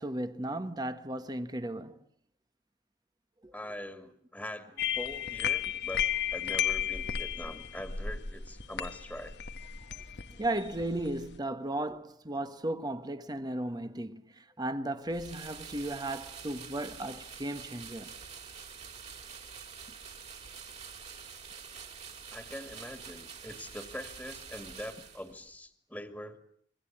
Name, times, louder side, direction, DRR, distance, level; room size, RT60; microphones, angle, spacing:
voice 1, 0.0-2.0 3.4-3.5 10.0-10.1 10.4-18.1, right 1 dB, 25° right, 1.4 m, -35 dB
voice 2, 3.5-9.4 22.3-26.4, left 1 dB, 5° left, 2.3 m, -43 dB
sound 1, 4.8-11.4, left 9 dB, 75° left, 1.4 m, -34 dB
sound 2, 15.1-25.5, right 6 dB, 40° right, 4.7 m, -47 dB
27.5 x 23.5 x 8.7 m
head